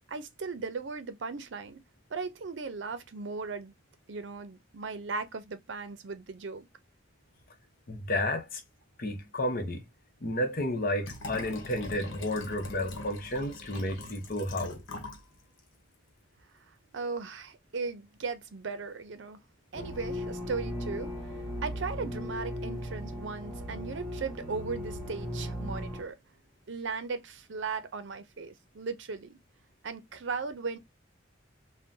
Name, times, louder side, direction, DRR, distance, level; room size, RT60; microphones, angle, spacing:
voice 1, 0.1-1.8 2.1-3.7 4.1-6.7 16.9-19.4 19.7-21.1 21.6-26.1 26.7-29.4 29.8-30.8, right 4 dB, 70° right, 0.5 m, -37 dB
voice 2, 7.9-8.6 9.0-9.8 10.2-14.8, left 1 dB, 50° left, 0.8 m, -32 dB
Liquid, 11.0-15.3 15.6-15.7, left 2 dB, 85° left, 0.9 m, -42 dB
sound 1, 19.7-26.0, equal, 15° right, 0.9 m, -37 dB
3.7 x 2.1 x 2.6 m
head